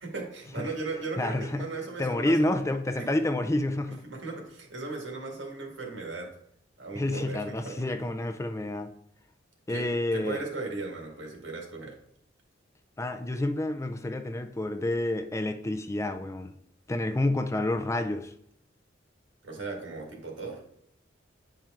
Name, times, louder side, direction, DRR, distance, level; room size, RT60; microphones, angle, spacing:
voice 1, 0.0-2.5 3.0-3.1 3.9-6.3 6.8-7.9 9.7-9.9 10.1-11.9 19.4-20.6, right 3 dB, 70° right, 1.9 m, -37 dB
voice 2, 1.2-1.7 2.0-4.0 6.9-8.9 9.7-10.4 13.0-16.5 16.9-18.3, left 1 dB, 15° left, 0.4 m, -29 dB
8.9 x 4.5 x 3.7 m
head